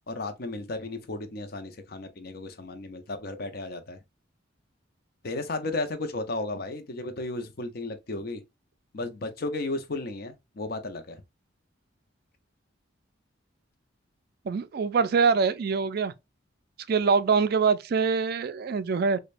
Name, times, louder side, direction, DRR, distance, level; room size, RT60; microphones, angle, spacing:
voice 1, 0.1-4.0 5.2-8.4 8.9-11.2, left 2 dB, 50° left, 0.7 m, -34 dB
voice 2, 14.5-16.1 16.9-19.2, right 5 dB, 50° right, 0.3 m, -24 dB
4.9 x 2.2 x 2.5 m
head